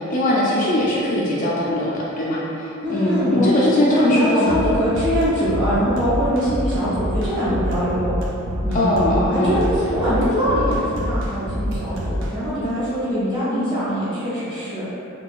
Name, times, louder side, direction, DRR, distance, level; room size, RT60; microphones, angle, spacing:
voice 1, 0.0-4.6 8.7-9.6, left 1 dB, 35° left, -6 dB, 0.3 m, -21 dB
voice 2, 2.8-3.5 3.9-8.2 8.6-8.9 9.2-14.8, equal, 25° right, -11 dB, 1.1 m, -22 dB
sound 1, 4.5-12.3, equal, 60° right, 0.4 m, -26 dB
3.6 x 2.3 x 2.3 m, 2.9 s
head